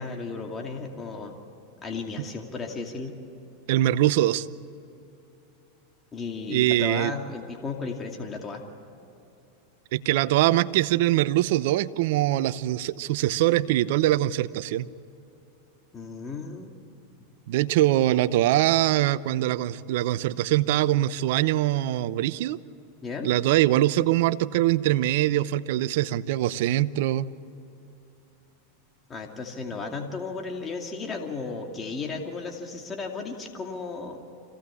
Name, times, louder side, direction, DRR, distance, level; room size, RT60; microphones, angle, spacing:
voice 1, 0.0-1.3 1.8-3.2 6.1-8.6 15.9-16.7 23.0-23.3 29.1-34.2, left 4 dB, 25° left, 2 dB, 2.4 m, -34 dB
voice 2, 3.7-4.5 6.5-7.1 9.9-14.9 17.5-22.6 23.2-27.3, right 14 dB, 65° right, 16 dB, 0.7 m, -23 dB
26.0 x 17.0 x 8.5 m, 2.9 s
hypercardioid pair, 105°, 0 cm